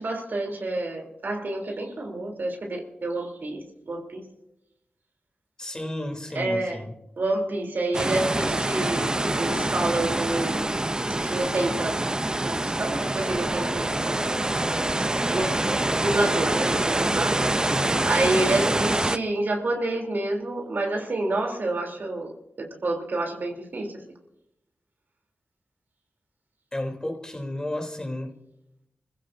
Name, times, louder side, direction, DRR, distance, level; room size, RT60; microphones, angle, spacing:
voice 1, 0.0-4.3 6.3-6.8 7.2-10.8 11.2-12.0 12.4-14.5 15.3-17.4 18.0-22.3 22.6-24.0, right 2 dB, 70° right, 3.4 m, -28 dB
voice 2, 5.6-6.9 17.7-18.1 26.7-28.4, left 1 dB, 20° left, 3.4 m, -32 dB
sound 1, 7.9-19.2, right 1 dB, 20° right, 0.6 m, -25 dB
26.5 x 15.5 x 2.7 m
cardioid pair, 60°, 3 cm